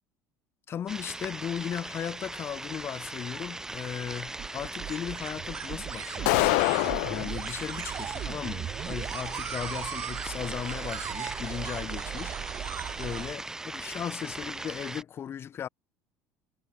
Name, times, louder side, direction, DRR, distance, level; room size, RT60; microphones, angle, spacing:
voice 1, 0.7-12.4 13.0-15.7, left 9 dB, 40° left, 4.5 m, -37 dB
sound 1, 0.9-15.0, right 2 dB, 10° right, 1.6 m, -39 dB
sound 2, 3.5-13.3, right 11 dB, 45° right, 1.4 m, -38 dB
sound 3, 6.3-7.3, left 33 dB, 85° left, 0.4 m, -24 dB
supercardioid pair, 110°, 6 cm